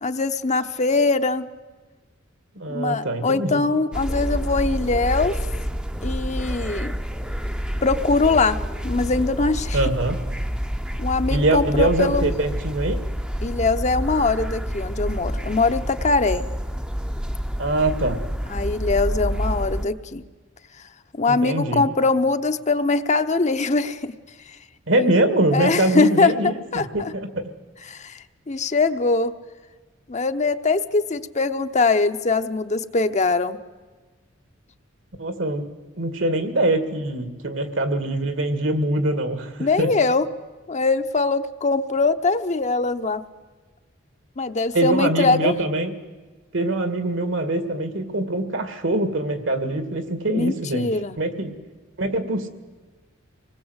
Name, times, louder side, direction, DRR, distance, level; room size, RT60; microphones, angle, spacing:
voice 1, 0.0-1.4 2.7-5.4 6.0-6.9 7.8-9.8 11.0-12.3 13.4-16.5 18.5-20.2 21.2-24.1 25.0-25.1 25.5-27.1 27.9-29.3 30.1-33.6 39.6-40.3 40.7-43.2 44.4-45.5 50.3-51.2, left 3 dB, 35° left, 9 dB, 0.8 m, -22 dB
voice 2, 2.6-3.6 9.7-10.2 11.3-13.0 17.6-18.2 21.3-21.8 24.9-27.5 35.2-35.6 36.0-39.9 44.7-45.9 46.5-50.9 51.2-51.5 52.0-52.5, right 2 dB, 70° right, 9 dB, 2.2 m, -23 dB
sound 1, 3.9-19.9, equal, 5° right, 0.7 m, -28 dB
25.5 x 20.0 x 8.1 m, 1.3 s
head